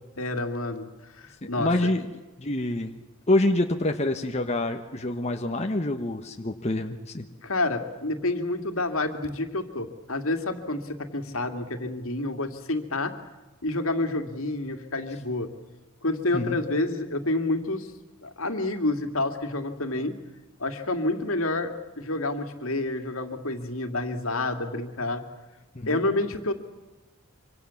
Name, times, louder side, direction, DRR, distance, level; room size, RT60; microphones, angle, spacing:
voice 1, 0.2-0.9 1.2-1.7 7.4-13.1 13.6-15.5 16.0-17.9 18.2-20.1 20.6-21.7 22.0-25.2 25.8-26.5, left 2 dB, 70° left, 7 dB, 2.4 m, -28 dB
voice 2, 1.4-2.1 2.4-2.9 3.3-7.3 16.3-16.6 25.7-26.0, left 1 dB, 30° left, 4 dB, 1.2 m, -26 dB
25.5 x 25.5 x 7.2 m, 1.2 s
head